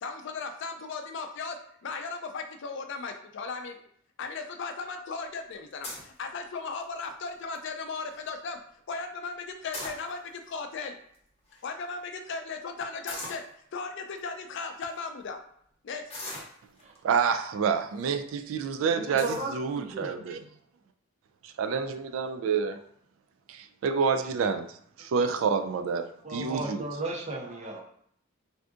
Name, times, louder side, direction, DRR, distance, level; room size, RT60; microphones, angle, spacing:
voice 1, 0.0-1.6 1.8-3.8 4.2-8.6 8.9-10.9 11.6-13.4 13.7-15.4 15.8-16.0, left 4 dB, 65° left, 6 dB, 0.4 m, -36 dB
sound 1, 5.8-6.2 6.8-7.1 7.5-7.6 7.9-8.2 9.5-10.4 11.1-11.2 11.4-11.6 13.1-13.5 14.2-14.3 14.8-15.0 16.1-17.0 17.7-18.1 18.5-18.6 19.2-19.5, left 2 dB, 30° left, 0.7 m, -39 dB
voice 2, 17.0-20.4 21.4-22.8 23.5-26.9, right 6 dB, 75° right, 9 dB, 0.3 m, -28 dB
voice 3, 19.0-20.2 26.2-27.8, right 2 dB, 35° right, 0 dB, 0.6 m, -35 dB
3.5 x 2.6 x 2.4 m, 0.66 s
head